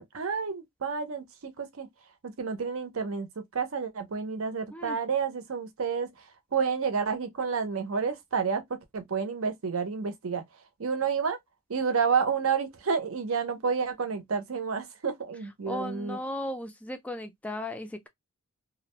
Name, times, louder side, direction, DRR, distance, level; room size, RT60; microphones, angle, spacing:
voice 1, 0.0-1.9 2.2-3.3 3.5-10.4 10.8-11.4 11.7-16.2, right 6 dB, 70° right, 0.6 m, -30 dB
voice 2, 15.7-18.1, left 1 dB, 5° left, 0.3 m, -36 dB
2.5 x 2.0 x 3.0 m
head